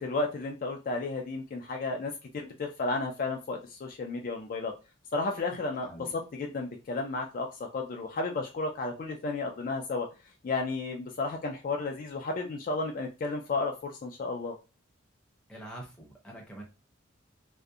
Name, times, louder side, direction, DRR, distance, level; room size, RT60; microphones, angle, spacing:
voice 1, 0.0-4.7 5.1-10.1 10.4-14.6, left 3 dB, 45° left, 2 dB, 0.3 m, -33 dB
voice 2, 15.5-16.6, right 1 dB, 5° left, -2 dB, 0.6 m, -45 dB
2.6 x 2.1 x 2.3 m, 0.30 s
head